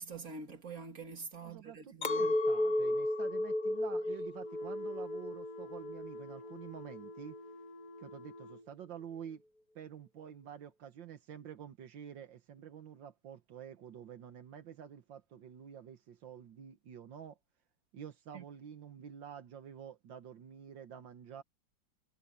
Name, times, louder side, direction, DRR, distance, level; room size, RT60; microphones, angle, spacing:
voice 1, 0.0-2.4 18.3-18.4, right 4 dB, 50° right, 2.9 m, -45 dB
voice 2, 1.4-7.4 8.0-9.4 9.8-17.4 17.9-21.4, right 8 dB, 80° right, 1.9 m, -49 dB
Chink clink, 2.0-7.4, left 1 dB, 35° left, 0.8 m, -34 dB
sound 1, 4.4-8.7, left 2 dB, 65° left, 2.6 m, -51 dB
omnidirectional pair, 2.0 m